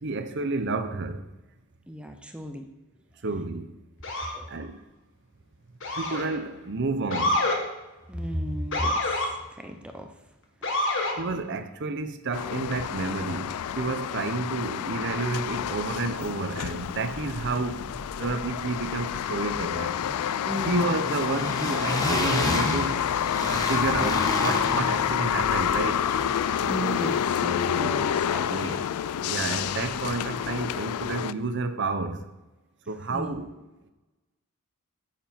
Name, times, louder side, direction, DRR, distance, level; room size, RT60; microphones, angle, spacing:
voice 1, 0.0-1.2 3.2-3.7 4.5-4.8 6.0-7.4 11.2-17.8 18.2-19.9 20.7-23.0 23.5-26.0 27.7-27.9 28.5-28.8 29.2-32.2 32.9-33.5, right 3 dB, 50° right, 8 dB, 0.7 m, -30 dB
voice 2, 1.9-2.7 4.3-4.5 8.1-10.1 10.8-10.9 20.5-21.1 26.7-28.9 33.1-33.4, equal, 5° right, 5 dB, 0.7 m, -35 dB
Motor vehicle (road) / Siren, 4.0-4.4 5.8-6.4 7.1-7.6 8.7-9.3 10.6-11.2, left 2 dB, 55° left, 1.6 m, -26 dB
sound 1, 12.3-31.3, left 9 dB, 80° left, 0.3 m, -28 dB
sound 2, 15.6-16.6 16.8-29.0, equal, 15° left, 1.1 m, -34 dB
8.9 x 7.6 x 4.4 m, 1.0 s
head